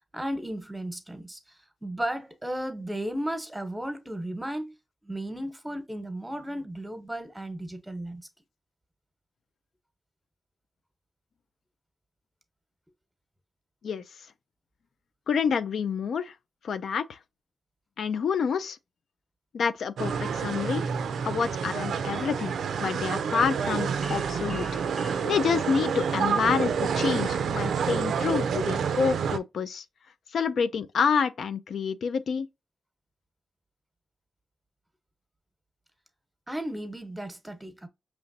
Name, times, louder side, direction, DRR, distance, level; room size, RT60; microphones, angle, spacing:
voice 1, 0.1-4.7 5.0-8.3 36.5-37.9, right 1 dB, 10° right, 1.0 m, -34 dB
voice 2, 15.3-16.3 16.6-17.2 18.0-18.8 19.5-20.8 21.2-22.5 22.8-24.8 25.2-29.8 30.3-32.5, left 6 dB, 80° left, 0.3 m, -28 dB
sound 1, 20.0-29.4, right 6 dB, 85° right, 0.3 m, -28 dB
sound 2, 21.1-26.3, equal, 5° left, 0.5 m, -45 dB
5.1 x 3.0 x 2.6 m
cardioid pair, 60°, 0 cm